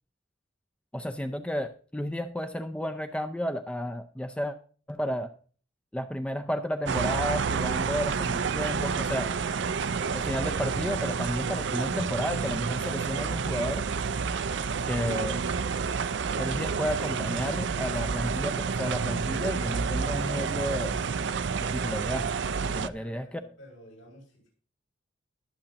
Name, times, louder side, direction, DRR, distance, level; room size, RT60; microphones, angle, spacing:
voice 1, 0.9-4.6 4.9-5.3 5.9-9.3 10.1-13.8 14.8-15.4 16.4-21.0 21.6-22.3 22.6-23.3, equal, 5° left, 8 dB, 0.5 m, -32 dB
sound 1, 6.9-22.9, right 5 dB, 60° right, 0.5 m, -29 dB
voice 2, 22.9-24.5, equal, 75° left, -1 dB, 7.2 m, -51 dB
20.5 x 7.9 x 2.9 m, 0.41 s
head